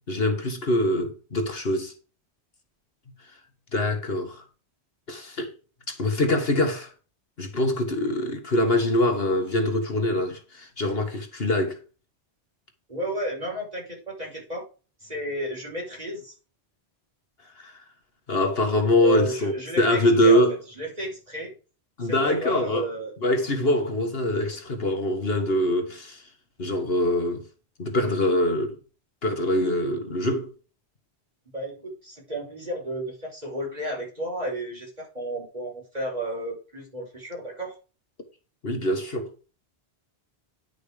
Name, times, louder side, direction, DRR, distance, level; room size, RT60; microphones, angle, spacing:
voice 1, 0.1-1.9 3.7-4.4 5.1-5.5 5.9-6.9 7.4-11.8 17.6-17.8 18.3-20.6 22.0-22.9 23.2-26.2 26.6-27.4 27.8-28.8 29.2-30.5 38.6-39.3, left 1 dB, 60° left, 1.9 m, -24 dB
voice 2, 12.9-14.6 15.0-16.3 19.0-20.4 20.8-21.5 22.0-23.1 31.5-37.8, equal, 35° right, 5.5 m, -33 dB
10.5 x 6.3 x 5.0 m
omnidirectional pair, 1.1 m